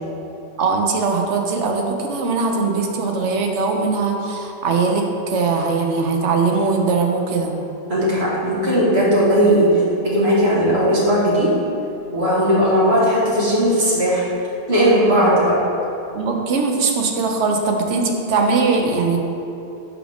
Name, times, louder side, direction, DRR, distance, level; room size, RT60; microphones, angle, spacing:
voice 1, 0.6-7.6 16.1-19.2, right 4 dB, 80° right, 2 dB, 1.1 m, -20 dB
voice 2, 7.9-11.5 12.1-14.3 14.7-15.6, equal, 65° right, -7 dB, 1.9 m, -17 dB
11.0 x 3.7 x 3.5 m, 2.9 s
omnidirectional pair, 1.2 m